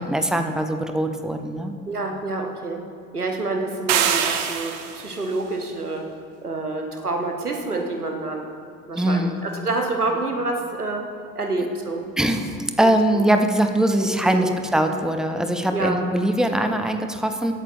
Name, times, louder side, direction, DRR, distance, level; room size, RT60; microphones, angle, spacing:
voice 1, 0.0-1.7 8.9-9.4 12.2-17.5, right 1 dB, ahead, 6 dB, 0.3 m, -22 dB
voice 2, 1.9-2.8 3.1-6.0 6.4-8.5 8.8-11.0 11.3-12.0 13.1-13.2 14.2-14.6 15.7-16.0, right 2 dB, 90° right, 3 dB, 0.9 m, -27 dB
sound 1, 3.9-5.2, right 9 dB, 55° right, 0.8 m, -23 dB
17.5 x 8.3 x 2.5 m, 2.4 s
figure-of-eight pair, 60°, 44 cm